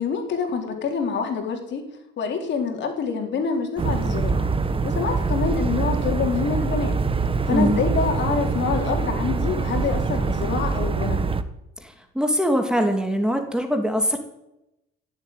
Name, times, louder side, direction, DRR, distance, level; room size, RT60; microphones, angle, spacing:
voice 1, 0.0-1.9 2.2-4.5 4.8-6.9 7.5-11.3, left 5 dB, 60° left, 4 dB, 4.0 m, -26 dB
sound 1, 3.8-11.4, right 4 dB, 25° right, 1.3 m, -24 dB
voice 2, 7.5-7.8 11.8-14.2, equal, 5° right, 5 dB, 2.6 m, -22 dB
16.5 x 7.9 x 9.5 m, 0.87 s
supercardioid pair, 85°, 21 cm